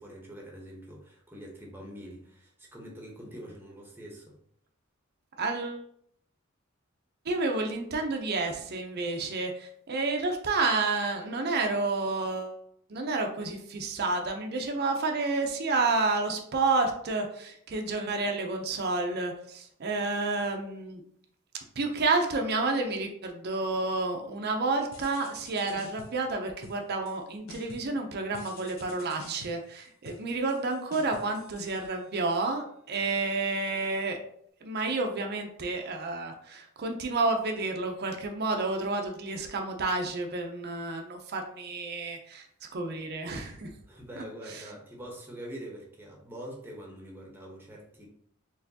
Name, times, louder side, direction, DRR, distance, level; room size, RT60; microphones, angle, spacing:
voice 1, 0.0-4.4 43.9-48.1, right 1 dB, 10° right, -1 dB, 0.9 m, -44 dB
voice 2, 5.4-5.8 7.3-12.6 12.9-21.0 21.8-34.2 34.6-42.5 42.7-43.7, right 3 dB, 50° right, 3 dB, 0.6 m, -30 dB
sound 1, 24.9-26.3 26.6-27.2 27.5-28.0 28.3-32.3, left 3 dB, 75° left, 0.7 m, -49 dB
4.3 x 3.2 x 2.7 m, 0.67 s
head